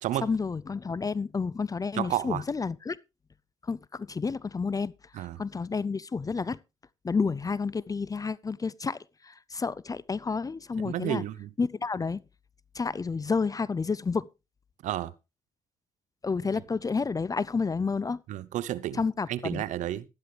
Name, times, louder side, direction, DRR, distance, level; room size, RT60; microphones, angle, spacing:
voice 1, 0.2-3.0 3.6-6.6 7.0-9.0 9.2-11.2 11.6-12.2 12.7-14.3 16.2-18.2 18.9-19.6, left 4 dB, 30° left, 0.5 m, -30 dB
voice 2, 1.9-2.4 5.1-5.4 10.8-11.5 14.8-15.1 18.3-19.0 19.3-20.1, right 13 dB, 75° right, 0.7 m, -31 dB
12.5 x 11.5 x 3.3 m
supercardioid pair, 55°, 13 cm